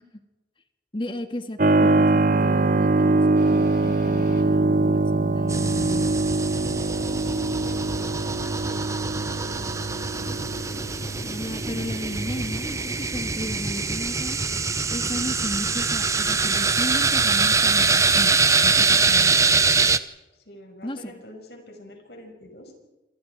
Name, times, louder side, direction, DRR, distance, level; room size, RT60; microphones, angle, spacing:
voice 1, 0.9-6.1 10.3-10.8 11.2-14.4 14.9-19.4 20.8-21.1, left 1 dB, 30° left, 7 dB, 1.9 m, -34 dB
Keyboard (musical), 1.6-14.0, right 2 dB, 45° right, 0.7 m, -24 dB
sound 1, 3.4-8.7, equal, 50° left, 5.4 m, -46 dB
sound 2, 5.5-20.0, right 4 dB, 20° right, 0.9 m, -24 dB
voice 2, 6.5-10.4 10.7-11.3 20.3-22.8, equal, 75° left, 3 dB, 5.9 m, -44 dB
28.0 x 27.5 x 4.8 m, 1.1 s
head